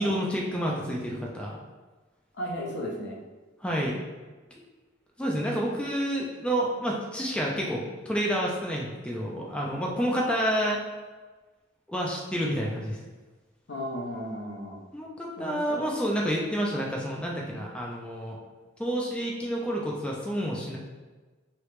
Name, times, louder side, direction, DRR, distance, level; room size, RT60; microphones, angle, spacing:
voice 1, 0.0-1.6 3.6-4.0 4.5-4.6 5.2-10.9 11.9-13.0 14.9-18.4 18.8-20.8, equal, 5° left, -3 dB, 0.4 m, -29 dB
voice 2, 2.3-3.2 13.7-14.8 15.4-15.8, equal, 65° left, -2 dB, 0.8 m, -35 dB
3.1 x 2.9 x 3.2 m, 1.3 s
head